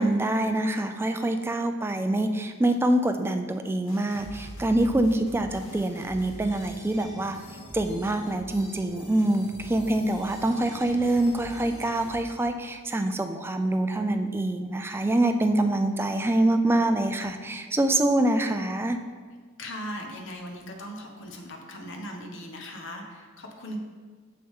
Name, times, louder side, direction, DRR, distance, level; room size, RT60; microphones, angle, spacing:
voice 1, 0.0-7.4 7.7-19.0, right 1 dB, 10° right, 7 dB, 0.3 m, -25 dB
sound 1, 3.8-12.2, equal, 90° left, 2.2 m, -43 dB
voice 2, 19.6-23.8, equal, 60° left, 2 dB, 0.9 m, -39 dB
6.9 x 6.3 x 3.6 m, 1.5 s
head